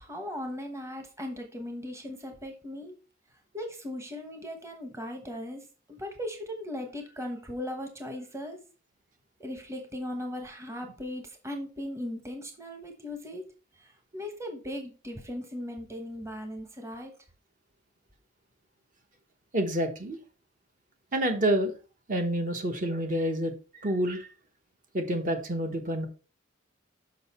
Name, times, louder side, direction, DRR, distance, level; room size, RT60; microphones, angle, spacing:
voice 1, 0.0-3.0 3.5-5.6 6.0-8.6 9.4-13.5 13.8-17.1, left 1 dB, 15° right, 4 dB, 1.1 m, -38 dB
voice 2, 19.5-20.2 21.1-21.7 22.1-24.3 24.9-26.1, right 1 dB, 40° right, 5 dB, 1.1 m, -28 dB
6.5 x 5.7 x 4.3 m, 0.34 s
head